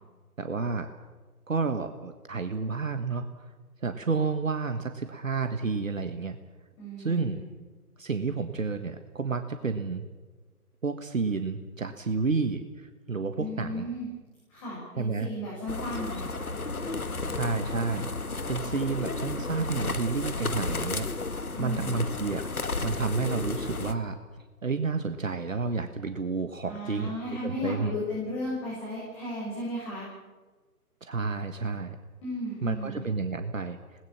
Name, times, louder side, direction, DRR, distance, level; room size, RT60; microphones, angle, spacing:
voice 1, 0.4-0.9 1.5-3.5 3.8-6.4 7.0-7.4 8.0-10.0 10.8-13.8 15.0-15.3 17.4-18.1 18.5-21.1 21.6-22.5 22.8-24.2 24.6-27.2 27.4-27.9 31.0-32.0 32.6-33.8, right 4 dB, 55° right, 8 dB, 1.6 m, -30 dB
voice 2, 6.8-7.5 13.4-14.1 14.5-16.3 21.5-22.0 26.7-30.1 32.2-33.1, left 1 dB, 20° left, -5 dB, 6.9 m, -35 dB
sound 1, 15.7-23.9, left 3 dB, 65° left, 2.0 m, -33 dB
27.5 x 19.5 x 7.4 m, 1.3 s
figure-of-eight pair, 145°, 46 cm